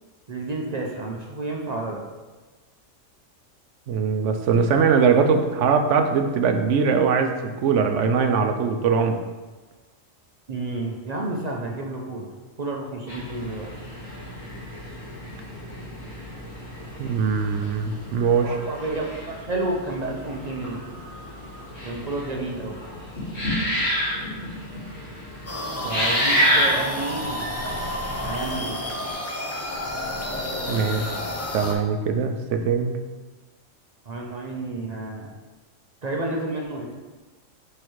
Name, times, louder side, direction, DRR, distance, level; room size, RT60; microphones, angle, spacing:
voice 1, 0.3-2.0 10.5-12.3 12.6-13.7 18.4-20.8 21.8-22.8 25.8-27.4 28.2-28.8 34.1-35.3 36.0-36.9, right 2 dB, 40° right, -1 dB, 0.6 m, -30 dB
voice 2, 3.9-9.2 17.0-18.6 30.7-31.1 31.5-32.9, right 5 dB, 70° right, 6 dB, 0.9 m, -21 dB
sound 1, 13.1-29.1, equal, 75° left, 2.4 m, -30 dB
sound 2, 25.5-31.7, left 1 dB, 20° left, 0.5 m, -30 dB
6.4 x 3.2 x 4.6 m, 1.3 s
omnidirectional pair, 1.3 m